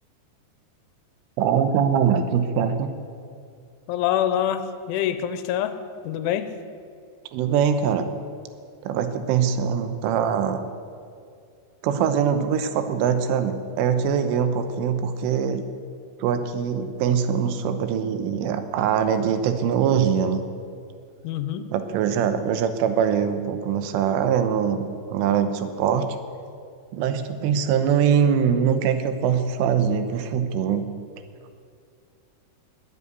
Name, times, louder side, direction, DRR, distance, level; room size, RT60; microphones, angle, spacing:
voice 1, 1.4-2.9 7.3-8.1 8.8-10.6 11.8-15.6 16.2-20.4 21.7-26.2 26.9-30.9, right 7 dB, 85° right, 9 dB, 3.5 m, -23 dB
voice 2, 3.9-5.8 6.0-6.5 21.2-21.7, left 10 dB, 90° left, 10 dB, 3.2 m, -25 dB
20.5 x 8.3 x 8.4 m, 2.4 s
omnidirectional pair, 5.5 m